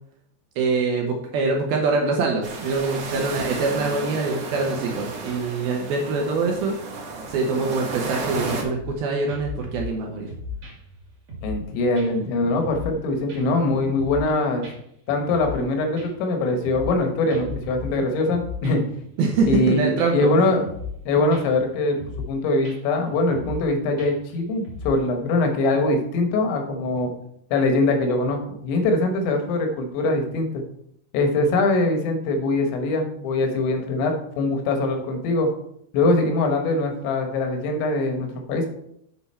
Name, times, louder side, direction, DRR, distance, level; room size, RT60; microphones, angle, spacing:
voice 1, 0.6-6.8 7.3-10.3 19.2-20.3, right 4 dB, 70° right, 1 dB, 2.4 m, -24 dB
sound 1, 2.4-8.6, right 3 dB, 90° right, 1.4 m, -33 dB
sound 2, 8.8-9.0 9.3-11.7 11.9-12.1 12.4-13.0 13.3-14.3 14.6-14.7 15.1-15.7 16.0-17.0 17.3-19.0 19.3-19.7 20.0-20.1 20.4-21.0 21.3-21.6 22.0-22.3 22.6-22.8 23.1-23.7 24.0-25.0, left 4 dB, 40° right, 2.6 m, -36 dB
voice 2, 11.4-14.7 15.1-18.8 19.4-20.6 21.1-22.0 22.3-27.1 27.5-30.6 31.1-35.5 35.9-38.7, left 2 dB, 80° left, 4 dB, 3.5 m, -22 dB
7.8 x 7.1 x 4.4 m, 0.74 s
omnidirectional pair, 5.2 m